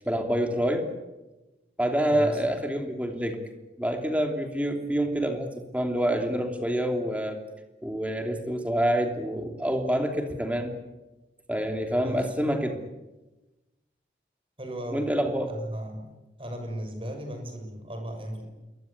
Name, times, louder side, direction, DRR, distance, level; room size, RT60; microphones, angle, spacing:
voice 1, 0.0-0.9 1.8-3.4 3.8-7.4 7.8-10.7 11.5-12.8 14.9-15.5, equal, 10° right, 3 dB, 3.0 m, -27 dB
voice 2, 2.1-2.4 12.0-12.3 14.6-15.1 15.5-16.1 16.4-18.5, right 1 dB, 30° right, 5 dB, 6.7 m, -36 dB
28.0 x 22.5 x 8.4 m, 1.1 s
head